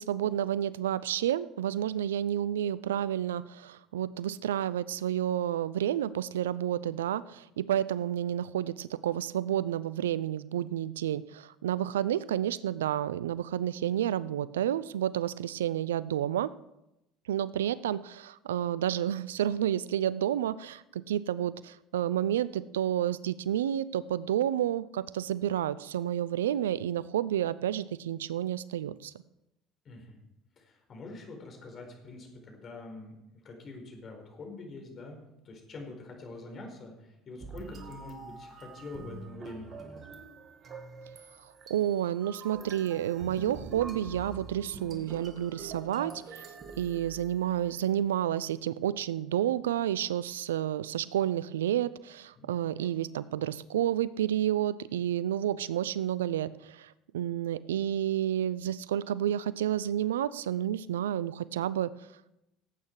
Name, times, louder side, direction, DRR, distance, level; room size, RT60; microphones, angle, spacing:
voice 1, 0.0-16.5 17.3-29.1 41.7-46.5 46.8-61.9, right 11 dB, 85° right, 19 dB, 0.4 m, -30 dB
voice 2, 29.8-30.2 30.6-33.2 33.4-35.2 35.4-40.0 52.4-52.5 52.8-52.9, left 2 dB, 45° left, 2 dB, 4.5 m, -45 dB
sound 1, 37.4-47.7, right 4 dB, 45° right, 2.1 m, -45 dB
17.5 x 8.7 x 4.8 m, 0.90 s
hypercardioid pair, 70°, 0 cm